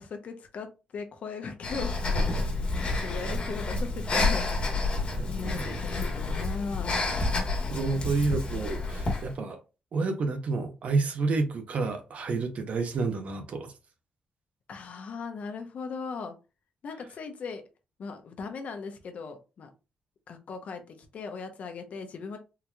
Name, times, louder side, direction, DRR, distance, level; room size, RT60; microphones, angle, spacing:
voice 1, 0.0-2.0 2.4-4.5 5.3-7.1 14.7-16.3 16.8-17.6 18.0-19.7 20.3-22.4, left 5 dB, 60° left, 0.7 m, -38 dB
Breathing, 1.6-9.3, left 2 dB, 40° left, 1.3 m, -29 dB
voice 2, 5.2-6.1 7.7-9.6 9.9-13.7, right 3 dB, 55° right, 0.7 m, -30 dB
3.8 x 2.9 x 2.3 m
cardioid pair, 110°, 3 cm